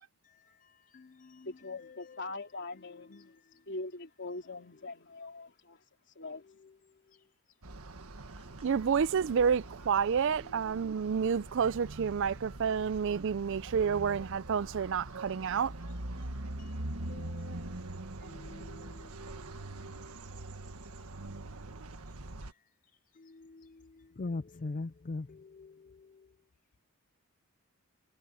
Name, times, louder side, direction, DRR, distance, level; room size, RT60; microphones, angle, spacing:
voice 1, 1.4-3.3 3.7-5.8 6.2-6.4, left 2 dB, 55° left, 3.4 m, -42 dB
sound 1, 7.6-22.5, right 2 dB, 80° right, 1.7 m, -43 dB
voice 2, 8.6-15.7, right 6 dB, 55° right, 0.4 m, -29 dB
voice 3, 17.1-17.6 18.2-18.7 23.3-23.7 24.2-25.3, left 3 dB, 35° left, 0.4 m, -39 dB
head